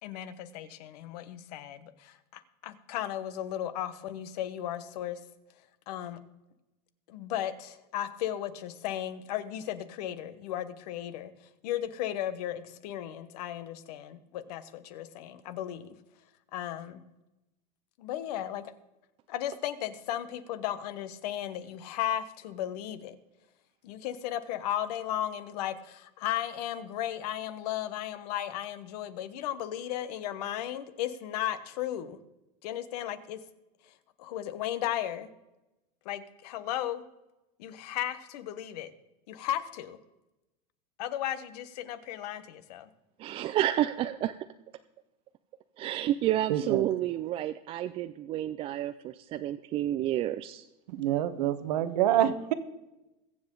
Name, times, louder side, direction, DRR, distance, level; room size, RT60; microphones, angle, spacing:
voice 1, 0.0-5.2 5.9-6.2 7.1-11.3 11.6-15.9 16.5-17.0 18.0-18.6 19.3-23.2 23.8-32.2 32.6-33.4 34.2-35.3 36.0-37.0 37.6-38.9 39.3-40.0 41.0-42.9, left 11 dB, 70° left, 13 dB, 1.2 m, -35 dB
voice 2, 43.2-44.3 45.8-50.6, right 13 dB, 25° right, 10 dB, 0.4 m, -30 dB
voice 3, 46.5-46.9 50.9-52.5, right 11 dB, 75° right, 12 dB, 1.2 m, -27 dB
21.5 x 7.8 x 3.8 m, 0.98 s
supercardioid pair, 150°, 21 cm